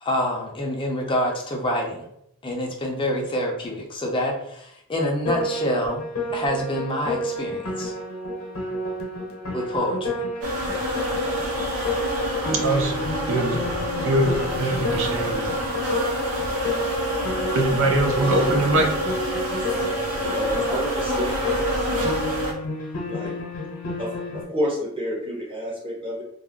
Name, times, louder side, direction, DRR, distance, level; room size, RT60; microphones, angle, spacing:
voice 1, 0.0-2.1 2.4-6.0 6.3-7.9 9.5-10.2, equal, 25° left, -1 dB, 0.5 m, -26 dB
Piano, 5.3-24.4, left 1 dB, 65° left, 0.8 m, -31 dB
sound 1, 10.4-22.5, equal, 85° right, 0.8 m, -27 dB
voice 2, 12.5-13.7 14.0-15.5 17.5-18.9, right 2 dB, 60° right, 3 dB, 0.5 m, -23 dB
voice 3, 20.2-21.6 23.1-23.3 24.0-26.2, equal, 25° right, -4 dB, 0.8 m, -29 dB
2.4 x 2.0 x 3.5 m, 0.77 s
head